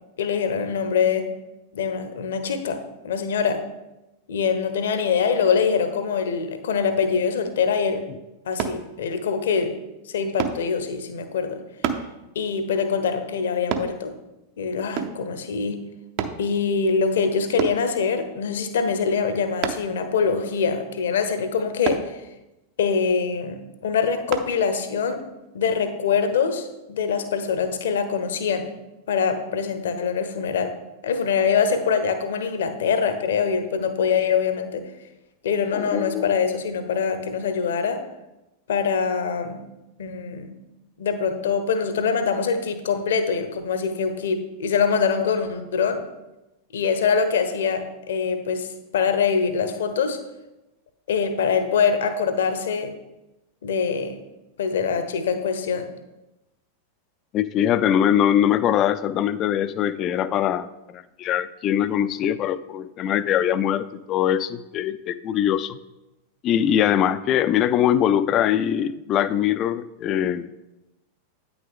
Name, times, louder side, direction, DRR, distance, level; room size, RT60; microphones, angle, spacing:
voice 1, 0.2-1.3 1.7-3.6 4.3-8.0 8.5-9.8 10.1-11.6 12.3-14.1 14.6-15.8 16.4-22.1 22.8-25.2 25.5-28.7 29.1-30.7 31.0-34.8 35.4-38.0 38.7-39.6 40.0-40.5 41.0-46.0 46.7-50.2 51.1-52.9 53.6-54.2 54.6-55.9, left 6 dB, 60° left, 9 dB, 0.8 m, -24 dB
sound 1, 8.6-8.8 10.4-10.6 11.8-12.1 13.7-13.9 15.0-15.2 16.2-16.4 17.6-17.8 19.6-19.9 21.8-22.1 24.3-24.5 25.1-25.2, right 8 dB, 45° right, 0.7 m, -27 dB
voice 2, 35.7-36.3 57.3-65.8 66.4-70.5, left 10 dB, 35° left, 14 dB, 0.4 m, -22 dB
9.0 x 6.1 x 3.6 m, 0.97 s
figure-of-eight pair, 90°, 0 cm